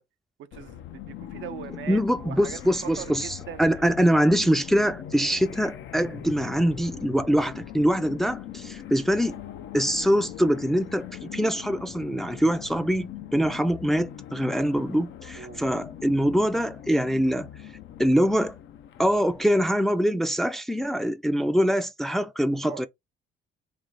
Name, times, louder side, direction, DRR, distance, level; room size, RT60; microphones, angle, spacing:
voice 1, 0.4-4.1 13.4-13.6 15.3-15.7 22.6-22.8, right 11 dB, 75° right, 0.5 m, -41 dB
sound 1, 0.5-19.7, left 11 dB, 70° left, 0.5 m, -41 dB
voice 2, 1.9-9.4 9.7-17.5 18.0-18.6 19.0-22.9, equal, ahead, 0.4 m, -24 dB
3.3 x 2.4 x 3.9 m
cardioid pair, 90°, 20 cm